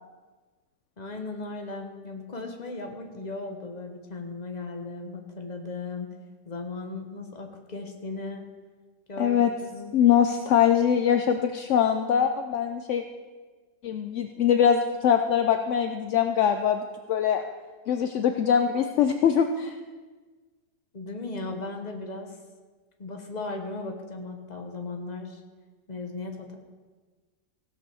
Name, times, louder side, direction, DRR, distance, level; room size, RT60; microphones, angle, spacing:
voice 1, 1.0-6.1 6.4-8.5 9.1-9.4 9.7-10.0 20.9-22.4 23.0-25.4 25.9-26.6, left 3 dB, 25° left, 3 dB, 1.2 m, -37 dB
voice 2, 9.2-9.5 9.9-13.0 13.8-17.5 17.9-19.7, left 8 dB, 65° left, 7 dB, 0.7 m, -23 dB
16.0 x 5.5 x 6.9 m, 1.4 s
omnidirectional pair, 1.8 m